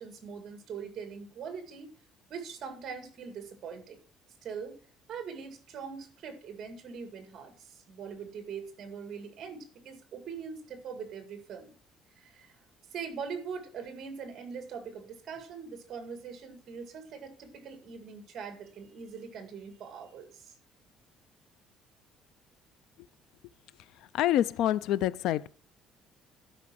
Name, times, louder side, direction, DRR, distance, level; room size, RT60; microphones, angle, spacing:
voice 1, 0.0-1.9 2.3-4.0 4.4-4.8 5.1-11.7 12.2-12.6 12.9-20.5, right 6 dB, 35° right, 2.0 m, -42 dB
voice 2, 24.1-25.5, left 12 dB, 65° left, 0.3 m, -26 dB
12.0 x 5.1 x 6.1 m
cardioid pair, 180°, 0 cm